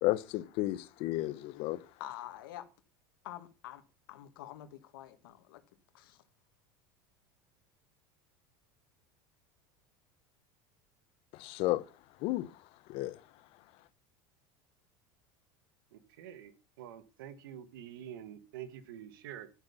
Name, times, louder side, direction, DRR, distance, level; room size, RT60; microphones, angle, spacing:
voice 1, 0.0-1.8 11.3-11.8 12.2-12.5 12.9-13.2, left 17 dB, 55° left, 1.0 m, -32 dB
voice 2, 2.0-2.7 3.2-3.8 4.1-5.6 5.9-6.2, left 13 dB, 85° left, 1.8 m, -47 dB
voice 3, 15.9-19.5, right 10 dB, 90° right, 1.7 m, -47 dB
10.5 x 8.7 x 5.5 m
supercardioid pair, 130°, 11 cm